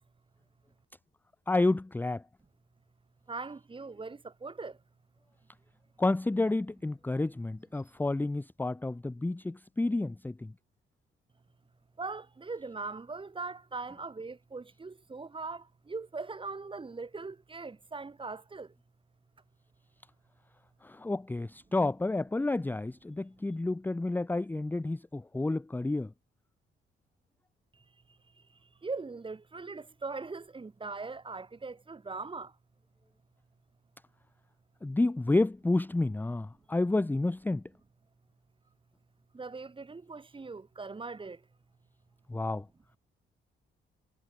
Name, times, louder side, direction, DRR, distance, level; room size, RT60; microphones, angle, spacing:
voice 1, 1.5-2.2 6.0-10.5 20.8-26.1 34.8-37.6 42.3-42.7, left 2 dB, 10° left, 0.6 m, -30 dB
voice 2, 3.3-4.8 12.0-18.7 27.7-27.8 28.4-28.5 28.8-32.5 39.3-41.4, right 4 dB, 25° right, 3.3 m, -40 dB
cardioid pair, 90°, 20 cm